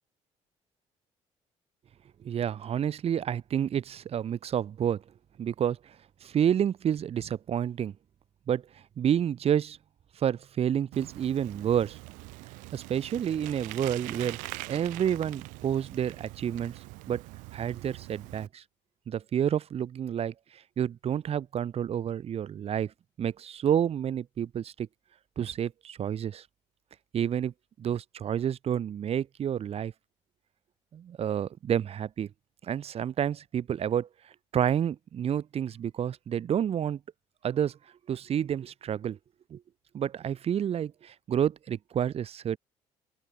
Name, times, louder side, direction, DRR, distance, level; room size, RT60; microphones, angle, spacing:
voice 1, 2.2-5.0 5.4-6.0 6.2-8.0 8.5-8.6 9.0-9.8 10.2-12.0 12.7-14.4 14.7-16.8 17.1-17.2 17.5-18.6 19.1-22.9 23.2-24.9 25.4-26.4 27.1-27.5 27.8-29.9 30.9-32.3 32.6-34.1 34.5-37.0 37.4-37.8 38.1-39.2 39.5-39.6 39.9-42.6, right 9 dB, 50° right, 0.9 m, -29 dB
Bicycle, 10.9-18.5, right 24 dB, 85° right, 0.9 m, -43 dB
open air
supercardioid pair, 70°, 13 cm